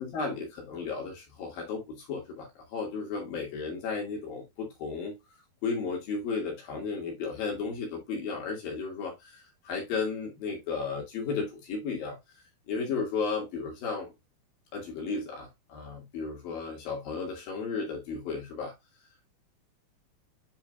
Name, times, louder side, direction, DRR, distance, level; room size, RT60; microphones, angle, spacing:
voice 1, 0.0-5.2 5.6-12.2 12.7-14.1 14.7-18.7, left 4 dB, 70° left, 4.3 m, -34 dB
10.0 x 4.8 x 2.3 m
omnidirectional pair, 4.3 m